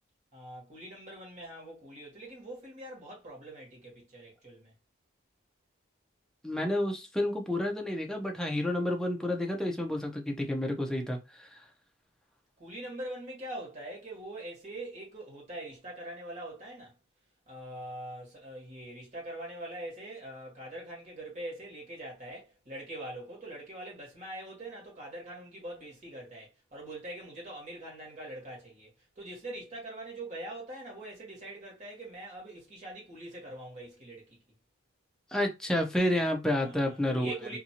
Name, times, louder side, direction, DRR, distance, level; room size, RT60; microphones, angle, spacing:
voice 1, 0.3-4.7 12.6-16.9 17.5-28.9 29.2-34.4 36.5-37.6, right 1 dB, 35° right, 1.4 m, -43 dB
voice 2, 6.4-11.6 35.3-37.3, left 1 dB, 5° left, 0.5 m, -30 dB
2.6 x 2.5 x 2.8 m
head